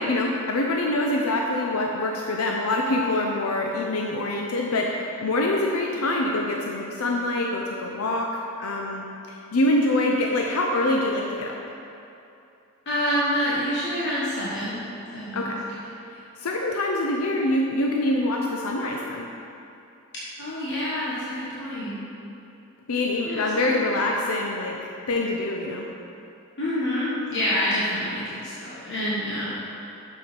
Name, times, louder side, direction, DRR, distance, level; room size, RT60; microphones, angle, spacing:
voice 1, 0.0-11.6 15.3-15.6 16.1-19.3 22.9-25.9, left 1 dB, 85° left, 0 dB, 0.6 m, -25 dB
voice 2, 12.8-14.8 15.1-15.5 15.9-16.1 20.4-22.0 23.2-24.0 26.6-29.5, equal, 55° left, -9 dB, 1.3 m, -27 dB
7.0 x 6.5 x 5.2 m, 2.7 s
head